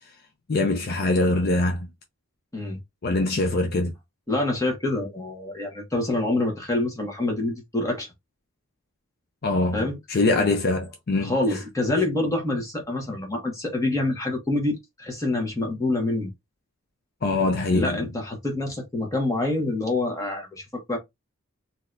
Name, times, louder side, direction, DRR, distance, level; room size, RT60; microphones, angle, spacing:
voice 1, 0.5-1.9 3.0-3.9 9.4-11.4 17.2-18.0, left 2 dB, 50° left, 0.5 m, -23 dB
voice 2, 4.3-8.1 9.7-10.0 10.3-10.4 11.2-16.3 17.7-21.0, left 2 dB, 15° left, 1.4 m, -26 dB
3.9 x 2.8 x 2.5 m
head